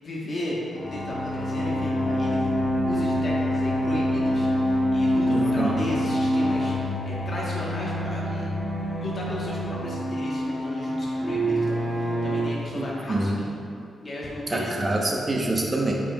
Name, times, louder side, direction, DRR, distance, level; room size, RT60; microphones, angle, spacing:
voice 1, 0.0-2.4 2.8-8.5 9.0-13.5 14.0-15.0, left 1 dB, 50° left, -5 dB, 1.1 m, -34 dB
sound 1, 0.7-12.4, equal, 10° left, 1.1 m, -26 dB
voice 2, 5.3-5.8 12.7-13.4 14.5-15.9, right 2 dB, 25° right, -1 dB, 0.9 m, -26 dB
8.7 x 4.9 x 2.3 m, 2.5 s
cardioid pair, 85°, 0 cm